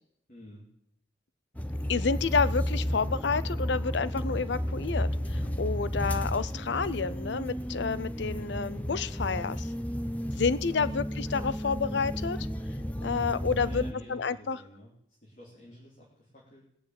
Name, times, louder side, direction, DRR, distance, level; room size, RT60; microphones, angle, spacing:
voice 1, 0.3-0.7 10.1-10.4 10.7-11.0 13.5-14.9 15.2-16.7, equal, 40° left, -5 dB, 3.0 m, -49 dB
sound 1, 1.5-13.9, equal, 10° left, 0.7 m, -32 dB
voice 2, 1.9-9.7 10.3-12.4 13.0-13.8 14.1-14.6, left 5 dB, 70° left, 16 dB, 0.5 m, -29 dB
19.5 x 7.3 x 8.8 m, 0.78 s
head